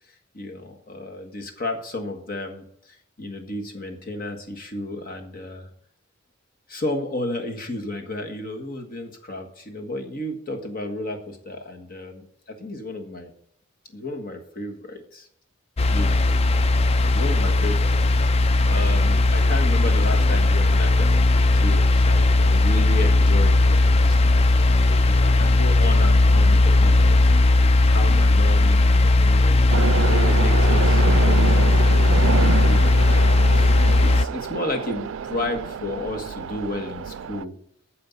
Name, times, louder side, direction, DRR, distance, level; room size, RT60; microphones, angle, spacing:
voice 1, 0.3-5.7 6.7-12.2 12.6-13.3 13.9-15.3 15.9-16.3 17.1-18.0 18.7-24.5 25.0-27.2 27.9-29.6 29.9-32.1 32.6-37.6, left 2 dB, 45° left, 4 dB, 1.6 m, -32 dB
sound 1, 15.8-34.2, left 2 dB, 30° left, 0.4 m, -17 dB
sound 2, 29.7-37.4, right 7 dB, 75° right, 0.4 m, -28 dB
9.5 x 6.6 x 7.1 m, 0.73 s
head